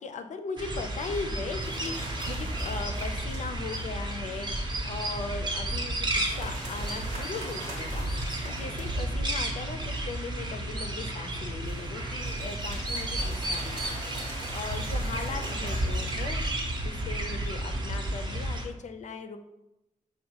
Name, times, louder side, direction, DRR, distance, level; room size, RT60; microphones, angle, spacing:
voice 1, 0.0-16.4 16.8-19.4, left 4 dB, 65° left, 7 dB, 0.4 m, -39 dB
sound 1, 0.6-18.6, right 1 dB, 35° right, 0.6 m, -32 dB
sound 2, 1.6-4.2 6.2-9.5 11.6-17.0, right 1 dB, 85° right, 1.0 m, -43 dB
5.3 x 2.2 x 2.8 m, 0.94 s
wide cardioid pair, 120°, 13 cm